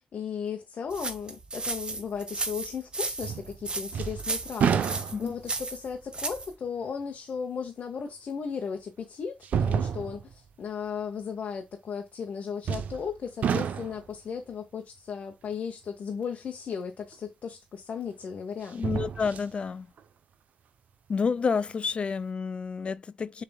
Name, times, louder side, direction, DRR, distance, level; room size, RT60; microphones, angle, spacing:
voice 1, 0.1-18.8, left 6 dB, 65° left, 0.8 m, -36 dB
sound 1, 0.9-6.5, right 3 dB, 35° right, 1.0 m, -34 dB
sound 2, 3.2-3.6 3.9-5.5 6.1-6.2 8.1-8.2 9.4-10.3 12.6-13.1 13.4-14.1 17.1-17.2 18.6-19.5 20.0-20.1, right 7 dB, 75° right, 0.6 m, -29 dB
voice 2, 18.7-19.9 21.1-23.4, left 5 dB, 45° left, 0.3 m, -29 dB
6.8 x 3.3 x 2.2 m
cardioid pair, 80°, 3 cm